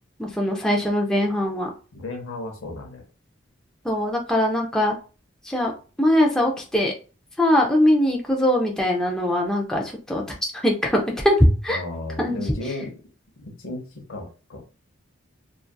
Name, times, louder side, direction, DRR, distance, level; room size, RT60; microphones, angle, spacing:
voice 1, 0.2-1.7 3.8-4.9 5.4-5.7 6.0-6.9 7.4-11.4 11.6-11.8 12.2-12.4, left 1 dB, 5° left, -1 dB, 0.3 m, -22 dB
voice 2, 1.9-3.0 11.7-12.9 13.4-14.6, left 2 dB, 85° left, 2 dB, 0.7 m, -34 dB
2.6 x 2.3 x 2.2 m, 0.36 s
head